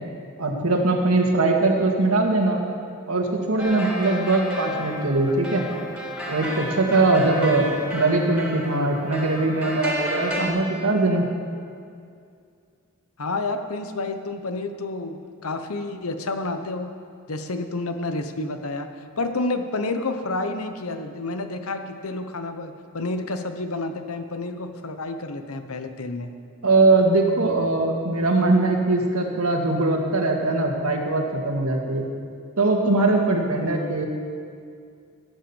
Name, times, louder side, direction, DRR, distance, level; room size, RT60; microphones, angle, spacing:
voice 1, 0.4-2.6 3.1-5.6 6.3-11.3 26.6-32.0 32.6-34.1, right 2 dB, 75° right, 1 dB, 2.1 m, -21 dB
sound 1, 3.6-10.5, equal, 5° right, 3.0 m, -32 dB
voice 2, 13.2-16.9 17.3-18.9 19.2-26.3, left 2 dB, 70° left, 7 dB, 1.1 m, -29 dB
17.0 x 9.1 x 7.3 m, 2.3 s
head